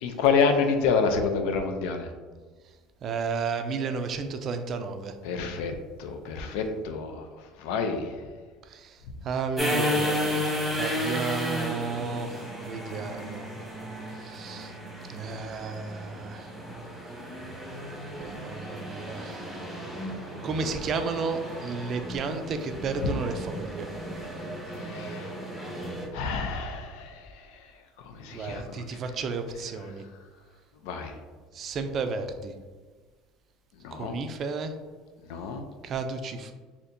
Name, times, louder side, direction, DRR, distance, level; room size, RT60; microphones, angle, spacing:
voice 1, 0.0-2.1 5.2-5.7 6.0-7.3 7.6-8.1 23.0-23.1 24.8-25.3 26.1-27.2 28.0-28.8 30.8-31.1 33.8-34.2 35.3-35.6, left 5 dB, 80° left, 6 dB, 0.4 m, -28 dB
voice 2, 3.0-5.1 8.7-8.9 9.2-12.3 12.6-13.5 14.2-14.7 15.1-16.5 18.2-19.5 20.4-23.9 28.3-30.0 31.5-32.5 33.9-34.7 35.8-36.5, right 4 dB, 40° right, 7 dB, 0.3 m, -32 dB
sound 1, 9.6-26.1, equal, ahead, 1.1 m, -34 dB
4.2 x 2.8 x 2.6 m, 1.4 s
cardioid pair, 130°, 0 cm